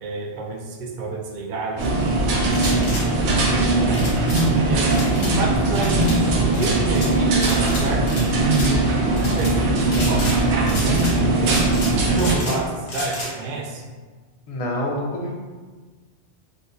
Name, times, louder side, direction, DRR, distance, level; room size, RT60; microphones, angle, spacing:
voice 1, 0.0-2.5 2.8-8.1 8.4-11.7 12.0-13.8, right 2 dB, 60° right, 0 dB, 0.5 m, -27 dB
sound 1, 1.8-12.3, right 2 dB, 75° right, 0.9 m, -20 dB
sound 2, 2.5-3.0 3.9-4.5 4.9-5.3 5.7-6.2 6.5-7.1 7.4-8.2 8.5-8.7 9.2-9.5 9.9-10.4 10.7-11.2 11.4-12.6 12.9-13.3, left 1 dB, 70° left, 1.1 m, -31 dB
voice 2, 14.5-15.3, left 1 dB, 50° left, -1 dB, 0.4 m, -26 dB
3.6 x 2.5 x 2.7 m, 1.4 s
omnidirectional pair, 1.2 m